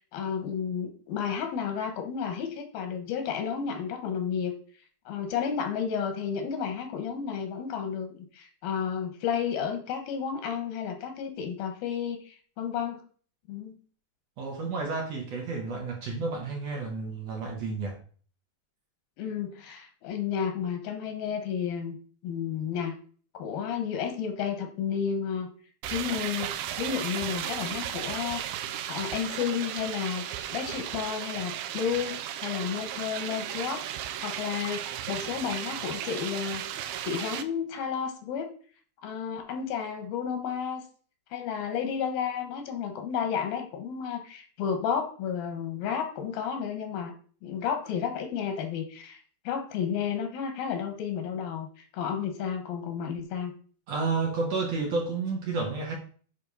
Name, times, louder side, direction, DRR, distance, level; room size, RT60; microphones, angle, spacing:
voice 1, 0.1-4.6 5.1-13.0 13.5-13.8 19.2-22.0 22.2-22.9 23.3-25.5 25.9-26.5 26.8-28.5 28.9-30.2 30.5-33.8 34.2-36.7 37.0-38.5 39.0-40.8 41.3-47.1 47.4-49.2 49.4-53.5, left 7 dB, 85° left, 6 dB, 3.1 m, -32 dB
voice 2, 14.4-18.0 53.9-56.0, right 4 dB, 55° right, 1 dB, 2.1 m, -31 dB
sound 1, 25.8-37.4, right 11 dB, 90° right, 2.4 m, -35 dB
9.9 x 3.4 x 5.5 m, 0.43 s
omnidirectional pair, 4.1 m